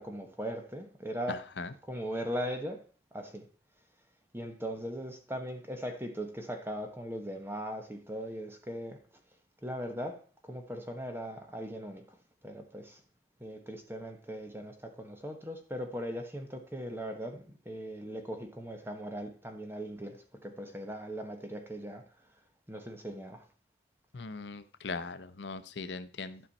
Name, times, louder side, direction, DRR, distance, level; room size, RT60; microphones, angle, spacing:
voice 1, 0.0-1.4 1.8-2.8 3.1-3.4 4.3-9.0 9.6-12.2 12.4-13.0 13.4-22.0 22.7-23.5, equal, 15° right, 1.1 m, -39 dB
voice 2, 1.3-1.7 24.1-26.4, left 4 dB, 70° left, 0.7 m, -40 dB
12.0 x 5.4 x 4.1 m
head